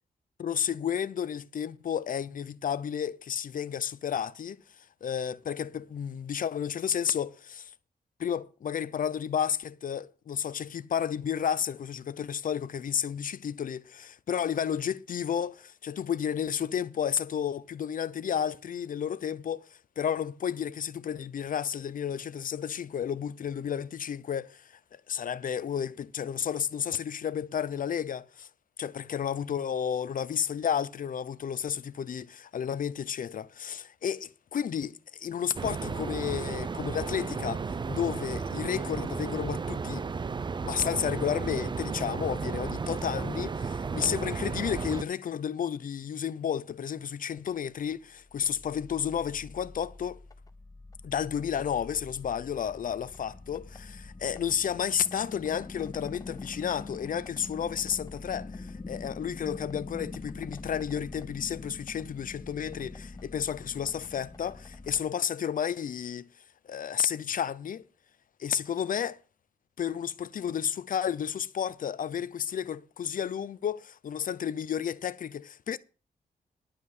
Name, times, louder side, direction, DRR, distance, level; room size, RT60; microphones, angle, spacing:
voice 1, 0.4-4.6 5.0-7.7 8.2-19.7 20.0-28.5 28.8-40.0 40.6-50.2 51.0-66.3 66.6-67.8 68.4-69.2 69.8-75.8, left 8 dB, 60° left, 0.6 m, -32 dB
sound 1, 35.5-45.0, right 5 dB, 30° right, 0.4 m, -34 dB
sound 2, 47.7-65.0, left 3 dB, 20° left, 0.7 m, -44 dB
11.5 x 5.4 x 7.7 m
wide cardioid pair, 120°, 16 cm